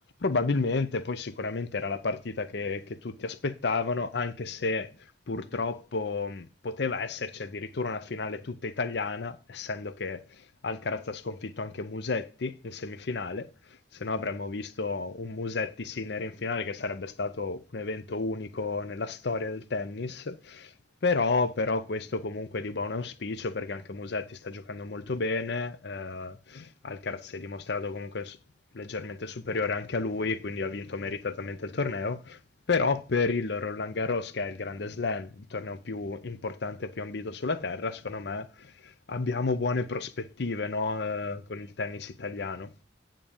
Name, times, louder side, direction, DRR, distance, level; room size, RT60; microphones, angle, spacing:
voice 1, 0.2-5.0 5.3-20.7 21.0-28.4 28.7-32.4 32.7-42.7, left 3 dB, 65° left, 0.7 m, -32 dB
9.0 x 3.8 x 7.0 m
head